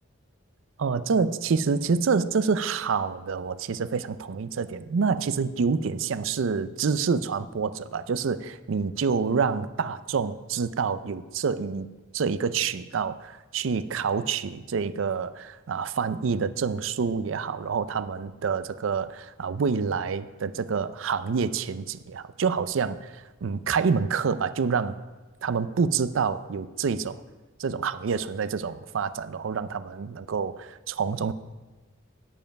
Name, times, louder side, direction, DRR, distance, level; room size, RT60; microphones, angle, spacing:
voice 1, 0.8-11.9 12.1-25.0 25.4-27.2 27.6-31.3, right 5 dB, 75° right, 14 dB, 0.4 m, -27 dB
9.2 x 7.4 x 5.2 m, 1.2 s
head